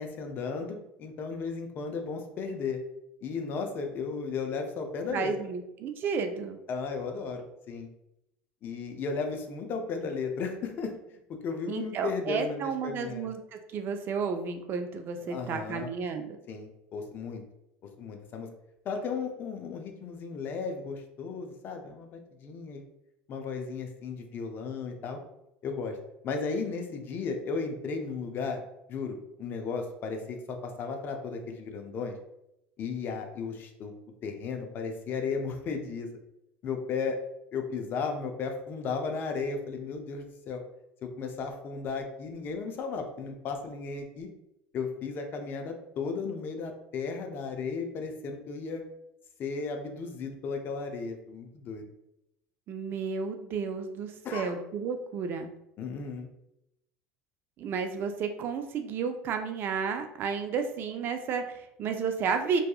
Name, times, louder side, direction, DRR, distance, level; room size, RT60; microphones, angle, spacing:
voice 1, 0.0-2.8 3.2-5.3 6.7-7.9 8.6-13.3 15.2-15.9 16.5-17.4 18.0-18.5 18.8-22.8 23.3-25.2 25.6-26.0 26.2-28.6 28.9-32.2 32.8-33.9 34.2-36.1 36.6-37.2 37.5-40.6 41.0-44.3 44.7-48.8 49.4-51.8 54.2-54.5 55.8-56.3, left 5 dB, 45° left, 4 dB, 0.5 m, -35 dB
voice 2, 5.1-6.6 11.7-16.4 52.7-55.5 57.6-62.6, right 5 dB, 45° right, 6 dB, 0.3 m, -32 dB
2.7 x 2.3 x 2.3 m, 0.83 s
supercardioid pair, 105°, 5 cm